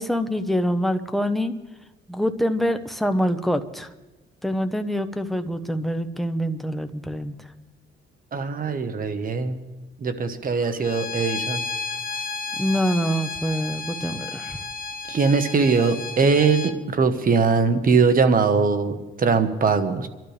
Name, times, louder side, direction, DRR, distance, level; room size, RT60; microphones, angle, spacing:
voice 1, 0.0-1.5 2.1-3.9 4.4-7.3 12.6-14.6, equal, ahead, 7 dB, 1.1 m, -25 dB
voice 2, 8.3-9.6 10.0-11.6 15.1-20.1, right 5 dB, 45° right, 9 dB, 1.4 m, -21 dB
Bowed string instrument, 10.8-16.7, left 4 dB, 45° left, 1.3 m, -32 dB
25.0 x 12.5 x 3.4 m, 1.1 s
cardioid pair, 90°, 20 cm